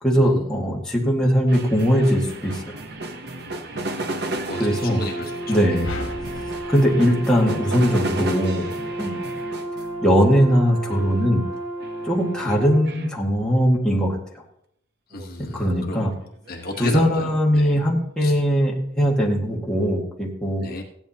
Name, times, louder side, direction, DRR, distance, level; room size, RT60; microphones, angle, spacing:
voice 1, 0.0-2.8 4.6-5.0 5.5-5.9 6.7-8.7 9.0-9.3 10.0-11.5 12.0-14.2 15.4-16.1 16.8-20.6, equal, 5° left, -4 dB, 1.8 m, -20 dB
sound 1, 1.5-11.5 11.8-13.1 15.1-15.3 16.0-17.7, right 2 dB, 55° right, 1.0 m, -34 dB
Brass instrument, 4.4-12.9, right 1 dB, 35° right, 2.2 m, -32 dB
voice 2, 4.5-5.8 15.1-15.6 15.9-16.0 16.5-17.8 18.2-18.4 20.6-20.8, left 1 dB, 50° left, 1 dB, 1.3 m, -33 dB
sound 2, 5.8-8.2, left 2 dB, 85° left, 1.2 m, -36 dB
16.0 x 10.5 x 2.9 m, 0.73 s
head